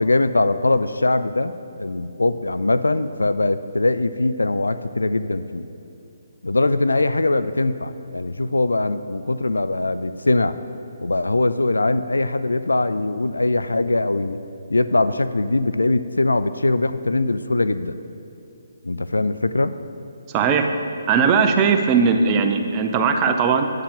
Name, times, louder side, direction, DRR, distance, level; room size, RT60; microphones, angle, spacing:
voice 1, 0.0-1.5 1.8-5.7 6.4-10.6 11.0-14.4 14.7-18.0 18.8-19.8, left 2 dB, 90° left, 13 dB, 0.3 m, -21 dB
voice 2, 20.3-20.7 21.1-23.7, right 5 dB, 25° right, 5 dB, 0.6 m, -18 dB
9.2 x 8.5 x 3.8 m, 2.6 s
figure-of-eight pair, 145°, 0 cm